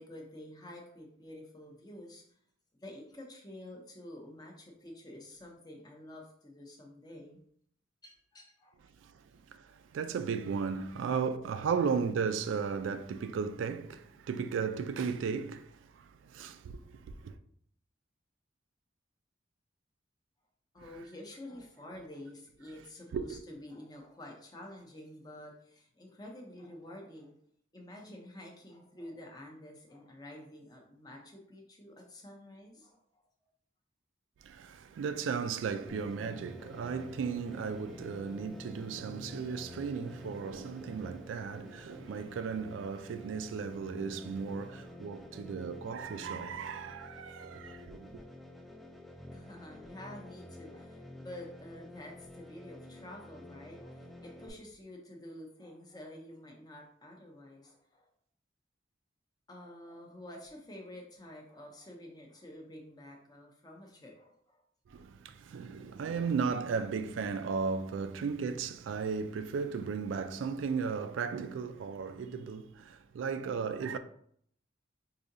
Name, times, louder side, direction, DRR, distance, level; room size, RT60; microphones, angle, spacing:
voice 1, 0.0-2.2 2.8-7.4 8.0-8.8 20.7-27.3 27.7-33.2 49.3-58.0 59.5-64.6, left 1 dB, 20° left, 0.7 m, -49 dB
voice 2, 9.5-17.4 23.1-23.4 34.4-48.1 64.9-74.0, right 5 dB, 85° right, 0.3 m, -35 dB
sound 1, 35.9-54.5, left 1 dB, ahead, 0.3 m, -49 dB
4.8 x 2.7 x 2.6 m
head